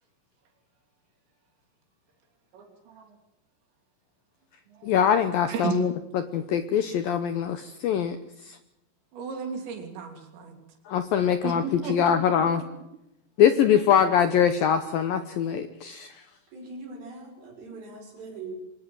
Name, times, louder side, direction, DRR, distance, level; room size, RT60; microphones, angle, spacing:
voice 1, 2.5-3.1 5.5-5.8 9.1-10.5 11.4-12.1 16.8-16.9, right 7 dB, 70° right, 4 dB, 5.3 m, -34 dB
voice 2, 4.8-8.2 8.4-8.6 10.9-12.6 13.4-16.2, left 8 dB, 85° left, 9 dB, 2.0 m, -23 dB
voice 3, 16.5-18.6, right 3 dB, 50° right, 2 dB, 7.4 m, -41 dB
24.0 x 19.0 x 7.7 m, 0.86 s
omnidirectional pair, 5.5 m